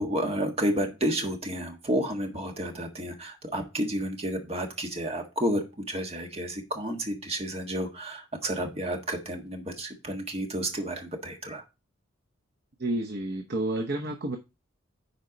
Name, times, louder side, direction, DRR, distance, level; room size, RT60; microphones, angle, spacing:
voice 1, 0.0-11.6, equal, 30° right, 1.5 m, -31 dB
voice 2, 12.8-14.4, right 1 dB, 50° right, 0.9 m, -30 dB
9.6 x 4.5 x 4.0 m
head